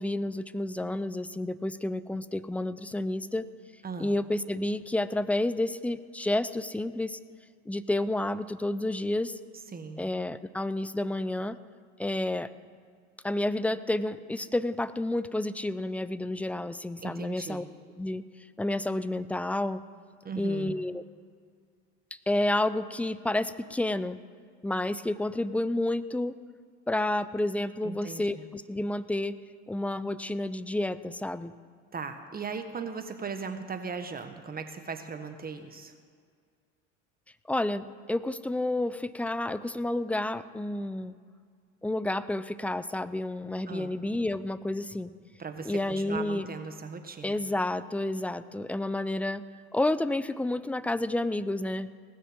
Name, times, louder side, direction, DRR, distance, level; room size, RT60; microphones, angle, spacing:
voice 1, 0.0-3.5 4.0-7.2 7.7-9.4 10.0-11.6 12.0-12.5 13.2-17.6 18.0-18.2 18.6-19.8 20.4-21.0 22.3-24.2 24.6-26.3 26.9-29.3 29.7-31.5 37.5-41.2 41.8-45.1 45.6-46.5 47.2-49.4 49.7-51.9, left 1 dB, 5° left, 15 dB, 0.5 m, -30 dB
voice 2, 3.8-4.2 9.7-10.0 17.0-17.7 20.2-20.8 27.8-28.5 31.9-35.9 43.7-44.0 45.4-47.4, right 5 dB, 25° right, 7 dB, 1.3 m, -38 dB
19.0 x 6.8 x 7.8 m, 2.1 s
hypercardioid pair, 80°, 36 cm